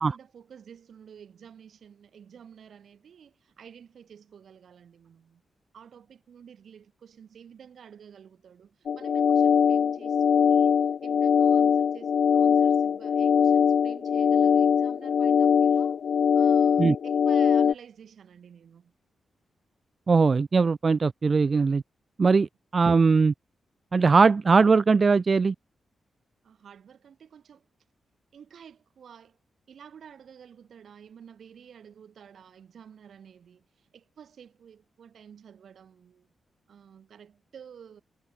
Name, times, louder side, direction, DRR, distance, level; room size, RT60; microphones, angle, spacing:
voice 1, 0.0-5.4 5.7-10.7 11.0-16.0 16.3-18.9 26.4-27.7 28.3-29.4 29.7-36.3 36.7-38.0, right 8 dB, 60° right, 6.0 m, -50 dB
sound 1, 8.9-17.7, left 7 dB, 55° left, 0.4 m, -22 dB
voice 2, 20.1-21.8 22.2-22.5 22.7-23.3 23.9-25.5, right 4 dB, 30° right, 0.4 m, -20 dB
wide cardioid pair, 170°, 0 cm